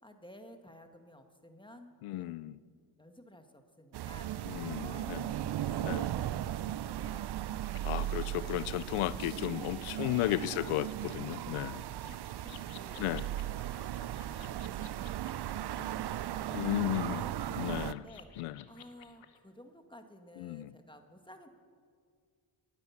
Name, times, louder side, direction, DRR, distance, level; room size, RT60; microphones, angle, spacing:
voice 1, 0.0-2.3 3.0-4.5 4.8-7.3 7.8-8.4 10.0-10.1 10.5-10.7 11.9-12.2 12.4-13.1 13.9-14.6 15.3-21.5, equal, 10° left, 5 dB, 1.8 m, -54 dB
voice 2, 2.0-2.6 4.5-5.2 5.8-6.1 7.8-11.8 13.0-13.3 16.5-17.2 17.6-18.0 18.4-18.6 20.4-20.7, left 15 dB, 85° left, 19 dB, 0.6 m, -34 dB
sound 1, 3.9-17.9, right 12 dB, 50° right, 0.6 m, -37 dB
sound 2, 7.6-19.4, left 10 dB, 70° left, 1.2 m, -57 dB
18.5 x 10.5 x 7.2 m, 2.1 s
cardioid pair, 65°, 50 cm